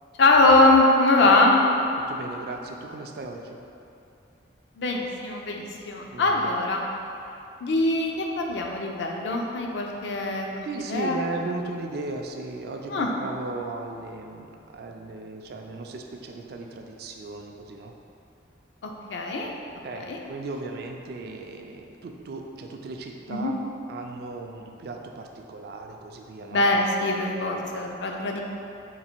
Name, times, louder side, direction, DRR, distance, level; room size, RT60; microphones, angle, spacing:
voice 1, 0.2-1.6 4.8-6.8 7.6-11.2 12.9-13.1 18.8-19.5 20.0-20.2 23.3-23.5 26.5-28.4, left 2 dB, 65° left, 1 dB, 0.4 m, -22 dB
voice 2, 2.1-3.6 6.1-6.4 10.6-14.5 14.7-17.9 19.8-23.6 23.9-26.6 27.5-27.6, right 3 dB, 55° right, 3 dB, 0.3 m, -36 dB
3.9 x 2.4 x 4.3 m, 2.8 s
head